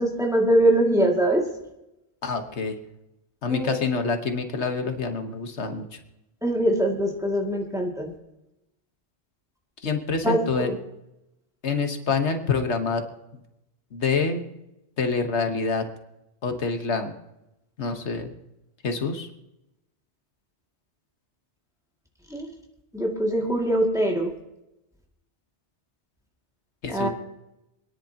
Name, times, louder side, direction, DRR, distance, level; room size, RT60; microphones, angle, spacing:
voice 1, 0.0-1.4 3.5-3.8 6.4-8.1 10.2-10.8 22.3-22.5 22.9-24.3 26.9-27.1, right 1 dB, 5° right, -1 dB, 2.1 m, -23 dB
voice 2, 2.2-2.7 3.4-5.9 9.8-10.7 11.6-13.0 13.9-14.4 15.0-15.9 16.4-17.1 17.8-18.3 18.8-19.3 26.8-27.1, left 4 dB, 85° left, 6 dB, 1.5 m, -26 dB
27.0 x 10.5 x 2.9 m, 0.91 s
omnidirectional pair, 1.1 m